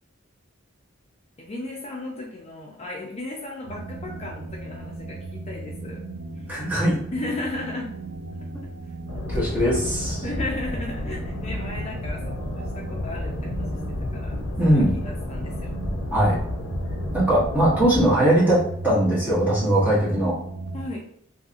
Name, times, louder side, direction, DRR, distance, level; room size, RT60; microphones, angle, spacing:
voice 1, 1.4-6.0 6.4-6.5 7.1-7.9 8.8-8.9 9.4-9.5 10.2-13.8 14.1-14.3 14.7-15.7 20.7-21.0, left 2 dB, 30° left, -2 dB, 0.4 m, -35 dB
sound 1, 3.6-20.8, right 2 dB, 75° right, 0.5 m, -37 dB
voice 2, 6.5-7.0 9.3-10.2 14.6-14.9 16.1-16.4 17.1-20.3, right 1 dB, 10° right, -7 dB, 1.0 m, -20 dB
sound 2, 9.1-18.1, left 1 dB, 80° left, 0.5 m, -31 dB
2.7 x 2.6 x 2.4 m, 0.69 s
head